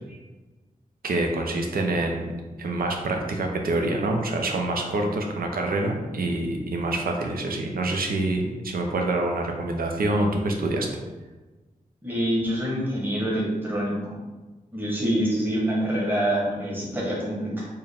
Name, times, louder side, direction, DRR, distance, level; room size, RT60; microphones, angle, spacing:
voice 1, 1.0-2.3 2.6-10.9, right 2 dB, 85° right, 2 dB, 0.6 m, -26 dB
voice 2, 12.0-14.0 14.7-17.7, equal, 15° right, -5 dB, 1.1 m, -26 dB
4.4 x 2.2 x 3.5 m, 1.2 s
wide cardioid pair, 90°, 15 cm